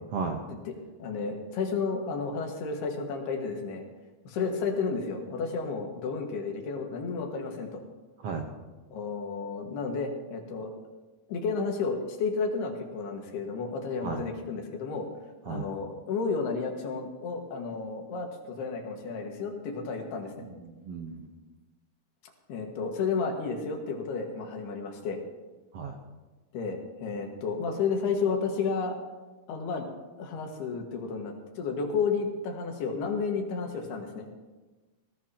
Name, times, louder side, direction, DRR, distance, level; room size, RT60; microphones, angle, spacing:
voice 1, 1.0-3.9 4.3-7.8 8.9-10.7 11.3-15.1 15.5-20.3 22.5-25.2 26.5-29.0 29.5-29.9 30.2-34.3, left 5 dB, 90° left, 2 dB, 3.8 m, -32 dB
voice 2, 20.4-21.2 25.7-26.0, right 5 dB, 85° right, 2 dB, 1.3 m, -34 dB
20.0 x 15.5 x 2.9 m, 1.2 s
omnidirectional pair, 4.5 m